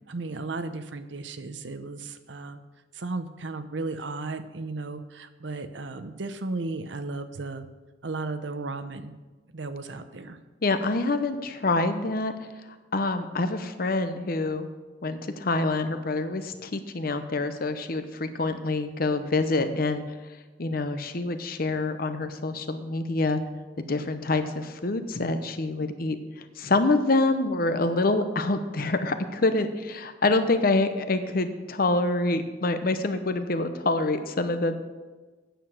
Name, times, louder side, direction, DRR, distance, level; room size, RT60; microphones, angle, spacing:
voice 1, 0.1-2.6 2.9-7.7 8.0-9.1 9.5-10.4, right 3 dB, 75° right, 10 dB, 0.8 m, -35 dB
voice 2, 10.6-12.3 12.9-14.7 15.0-20.0 20.6-23.4 23.9-26.2 26.6-34.8, left 2 dB, 50° left, 9 dB, 0.8 m, -26 dB
9.0 x 6.9 x 7.3 m, 1.3 s
head